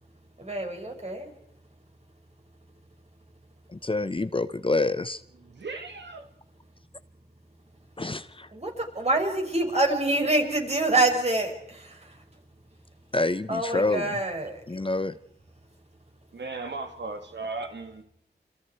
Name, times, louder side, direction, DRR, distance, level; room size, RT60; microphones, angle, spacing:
voice 1, 0.4-1.3 8.5-12.2 13.5-14.6, right 2 dB, 35° right, 1 dB, 6.8 m, -26 dB
voice 2, 3.7-5.2 8.0-8.5 13.1-14.1 14.7-15.1, left 2 dB, 30° left, 14 dB, 0.9 m, -27 dB
voice 3, 5.5-6.3 16.3-18.0, right 3 dB, 90° right, 5 dB, 2.5 m, -36 dB
28.5 x 28.0 x 4.8 m, 0.70 s
wide cardioid pair, 70°, 18 cm